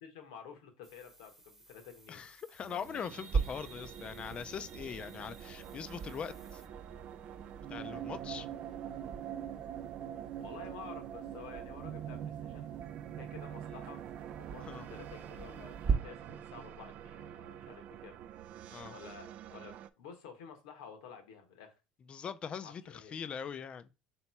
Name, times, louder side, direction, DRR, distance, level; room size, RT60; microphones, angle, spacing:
voice 1, 0.0-2.2 10.4-12.7 13.2-14.0 14.4-18.2 18.9-21.7 22.6-23.2, left 7 dB, 85° left, 1.0 m, -51 dB
sound 1, 0.8-6.7, right 1 dB, 10° right, 1.0 m, -61 dB
voice 2, 2.1-6.6 7.7-8.5 14.7-14.9 18.7-18.9 22.1-23.9, left 7 dB, 35° left, 0.4 m, -42 dB
sound 2, 2.6-19.9, right 10 dB, 55° right, 0.3 m, -45 dB
room reverb at night, 3.3-15.9, right 5 dB, 35° right, 0.8 m, -41 dB
3.5 x 3.0 x 4.3 m
supercardioid pair, 95°, 3 cm